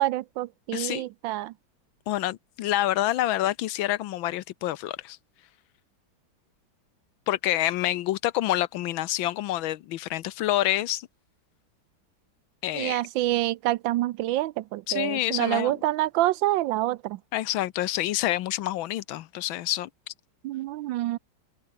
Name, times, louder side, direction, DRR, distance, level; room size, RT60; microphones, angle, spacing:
voice 1, 0.0-1.5 12.7-17.2 20.4-21.2, right 15 dB, 75° right, 1.2 m, -27 dB
voice 2, 0.7-1.1 2.1-5.2 7.3-11.1 12.6-13.0 14.9-15.8 17.3-20.1, left 14 dB, 80° left, 1.5 m, -27 dB
open air
omnidirectional pair, 2.2 m